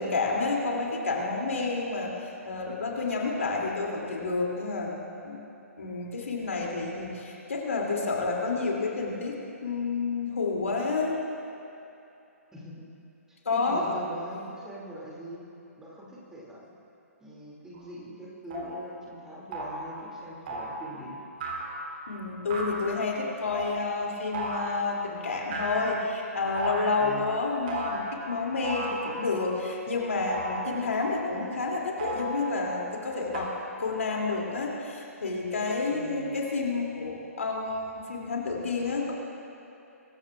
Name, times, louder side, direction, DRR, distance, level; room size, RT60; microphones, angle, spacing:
voice 1, 0.0-5.4 5.8-11.2 13.4-13.9 22.1-33.5 33.8-39.1, left 3 dB, 65° left, -2 dB, 2.7 m, -30 dB
voice 2, 12.5-12.9 13.3-15.4 15.8-16.7 17.2-21.2 27.0-27.3 35.9-36.2, equal, 5° right, -5 dB, 2.5 m, -42 dB
sound 1, 17.8-17.9 18.5-18.8 19.5-19.9 20.5-20.9 21.4-21.9 22.5-22.9 23.5-23.8 24.3-24.8 25.5-26.1 26.6-27.0 27.7-28.2 28.6-29.3 30.3-31.0 32.0-32.7 33.3-33.4, right 2 dB, 40° right, 3.6 m, -35 dB
23.0 x 14.5 x 2.4 m, 2.9 s
figure-of-eight pair, 130°, 8 cm